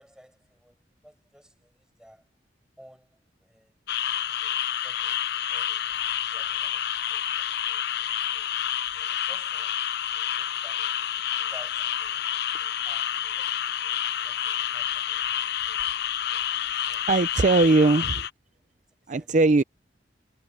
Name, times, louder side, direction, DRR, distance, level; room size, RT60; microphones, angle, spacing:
voice 1, 0.0-2.3 2.8-3.7 4.0-7.5 8.3-8.4 8.7-9.8 10.3-12.3 12.8-14.0 14.2-15.4 16.6-17.7 18.9-19.4, equal, 5° right, 7.0 m, -55 dB
sound 1, 3.9-18.3, left 10 dB, 65° left, 0.8 m, -29 dB
voice 2, 17.1-18.3 19.1-19.6, right 3 dB, 40° right, 0.5 m, -20 dB
head